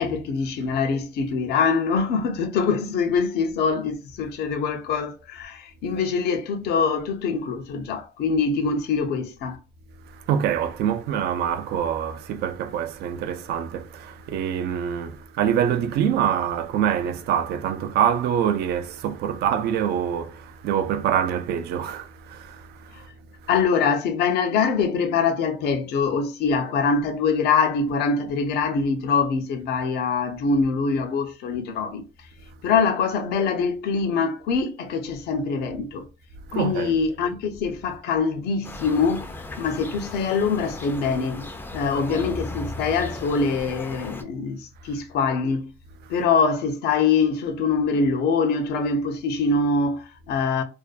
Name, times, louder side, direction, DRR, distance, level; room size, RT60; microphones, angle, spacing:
voice 1, 0.0-9.6 22.9-23.0 23.5-32.0 32.6-36.1 36.5-41.5 41.7-45.7 46.1-50.6, left 5 dB, 75° left, 0.6 m, -24 dB
voice 2, 10.1-23.1 23.4-23.6 36.5-37.0 46.0-46.2, right 9 dB, 75° right, 0.4 m, -25 dB
sound 1, 38.6-44.2, left 2 dB, 10° left, 0.4 m, -36 dB
2.5 x 2.2 x 2.4 m
cardioid pair, 110°, 17 cm